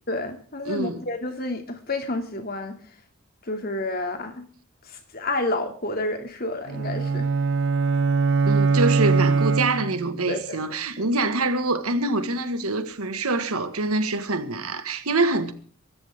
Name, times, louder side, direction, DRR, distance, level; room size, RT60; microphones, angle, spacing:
voice 1, 0.1-2.8 3.4-4.4 4.8-7.3 10.3-10.6 11.0-11.1, left 2 dB, 45° left, 2.5 m, -30 dB
voice 2, 0.7-1.0 8.4-15.5, right 2 dB, 90° right, 1.7 m, -25 dB
sound 1, 6.7-10.2, right 4 dB, 55° right, 0.6 m, -22 dB
24.0 x 13.5 x 3.6 m
head